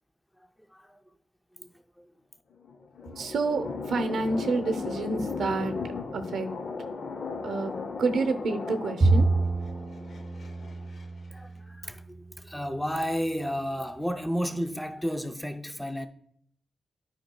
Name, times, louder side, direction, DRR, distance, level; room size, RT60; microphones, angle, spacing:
voice 1, 0.7-1.0 1.6-2.1 11.3-16.1, equal, ahead, 0.4 m, -32 dB
sound 1, 2.5-11.0, left 4 dB, 50° left, 0.5 m, -36 dB
voice 2, 3.1-5.7 6.1-6.5 7.4-7.7 8.0-9.3, right 3 dB, 90° right, 0.6 m, -28 dB
Bowed string instrument, 9.0-12.4, right 3 dB, 30° right, 1.3 m, -27 dB
12.0 x 5.1 x 2.2 m
wide cardioid pair, 165°, 0 cm